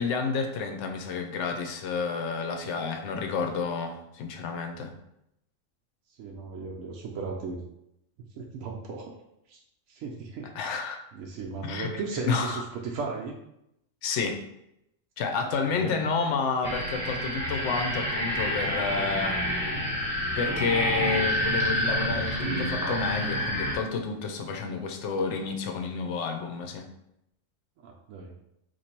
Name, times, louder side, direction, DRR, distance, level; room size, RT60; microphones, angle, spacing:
voice 1, 0.0-5.0 10.6-11.0 11.6-11.9 12.2-12.6 14.0-14.4 15.2-19.4 20.4-26.9, left 5 dB, 70° left, 5 dB, 0.8 m, -30 dB
voice 2, 6.2-7.6 8.3-9.1 9.5-9.6 9.9-10.5 11.1-13.4 15.4-15.5 15.7-15.9 27.8-28.3, right 4 dB, 80° right, -1 dB, 1.0 m, -36 dB
sound 1, 16.6-23.8, equal, 15° left, 1.2 m, -28 dB
2.9 x 2.6 x 4.3 m, 0.80 s
omnidirectional pair, 1.4 m